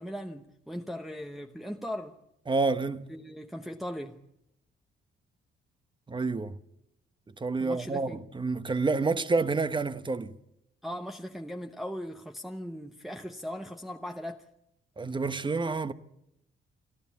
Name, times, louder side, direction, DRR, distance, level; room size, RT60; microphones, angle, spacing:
voice 1, 0.0-2.2 3.1-4.2 7.6-8.2 10.8-14.5, equal, ahead, 0.9 m, -38 dB
voice 2, 2.5-3.1 6.1-6.6 7.3-10.4 15.0-15.9, right 3 dB, 25° right, 1.0 m, -29 dB
27.0 x 12.5 x 8.4 m
cardioid pair, 90°, 20 cm